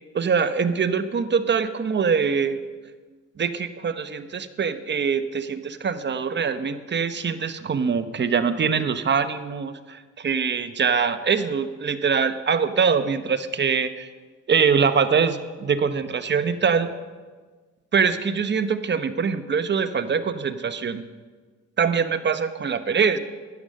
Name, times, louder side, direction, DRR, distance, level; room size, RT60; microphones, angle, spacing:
voice 1, 0.1-2.6 3.4-14.1 14.5-16.9 17.9-21.0 21.8-23.2, right 6 dB, 35° right, 11 dB, 0.9 m, -23 dB
12.0 x 10.0 x 6.4 m, 1.4 s
cardioid pair, 90°, 30 cm